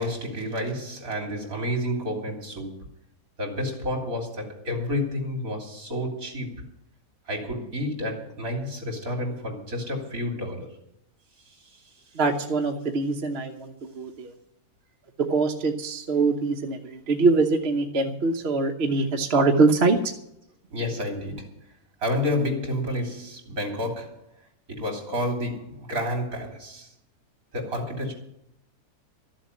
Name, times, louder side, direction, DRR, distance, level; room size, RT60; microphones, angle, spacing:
voice 1, 0.0-2.9 3.4-6.6 7.3-10.8 11.5-11.9 20.7-21.6 22.0-24.2 24.7-26.9 27.5-28.1, left 1 dB, 60° right, 3.6 m, -30 dB
voice 2, 12.1-14.3 15.2-20.1, right 3 dB, 45° right, 1.2 m, -23 dB
13.5 x 7.4 x 9.7 m
omnidirectional pair, 1.7 m